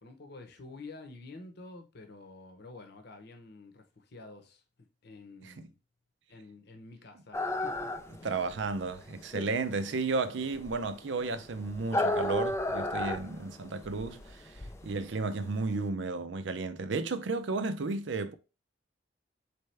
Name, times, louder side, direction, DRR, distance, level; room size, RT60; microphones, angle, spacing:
voice 1, 0.0-4.6 5.0-5.8 6.3-8.4, left 3 dB, 60° left, 0.9 m, -49 dB
sound 1, 7.3-15.8, left 1 dB, 15° left, 0.4 m, -34 dB
voice 2, 8.2-18.3, right 3 dB, 70° right, 0.5 m, -33 dB
4.3 x 3.4 x 3.3 m
head